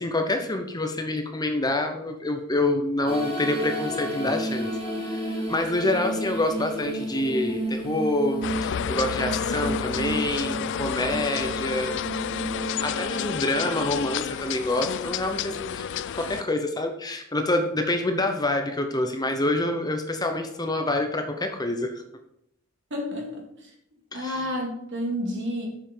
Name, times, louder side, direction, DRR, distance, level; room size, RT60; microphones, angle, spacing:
voice 1, 0.0-4.7 5.0-12.0 12.8-15.8 16.1-22.0 24.1-24.5, left 2 dB, 15° left, 5 dB, 0.8 m, -27 dB
sound 1, 3.1-14.9, right 1 dB, 25° right, 3.1 m, -32 dB
sound 2, 8.4-16.4, left 9 dB, 55° left, 0.3 m, -30 dB
voice 2, 22.9-23.7 24.1-25.8, equal, 55° right, 1 dB, 2.5 m, -30 dB
7.3 x 5.7 x 6.6 m, 0.76 s
head